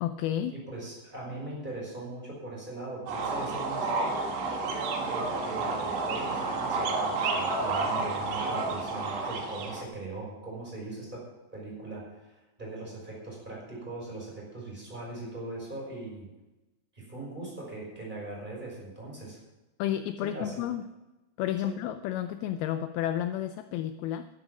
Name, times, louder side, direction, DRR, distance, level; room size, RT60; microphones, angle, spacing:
voice 1, 0.0-0.6 19.8-20.9 21.4-24.3, left 11 dB, 90° left, 10 dB, 2.2 m, -31 dB
voice 2, 0.5-4.5 5.0-11.2 11.5-16.3 16.9-19.4 20.2-20.6, right 2 dB, 10° right, -3 dB, 5.5 m, -40 dB
sound 1, 3.1-9.8, right 3 dB, 75° right, 3.8 m, -30 dB
12.0 x 11.0 x 6.0 m, 1.0 s
omnidirectional pair, 5.0 m